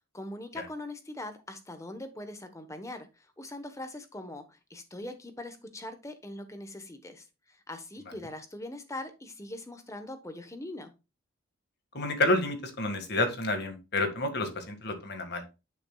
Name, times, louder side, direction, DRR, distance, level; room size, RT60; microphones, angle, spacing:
voice 1, 0.1-7.2 7.7-10.9, left 1 dB, 15° left, 1.0 m, -41 dB
voice 2, 11.9-15.4, left 2 dB, 50° left, 1.8 m, -29 dB
10.5 x 6.0 x 2.3 m
head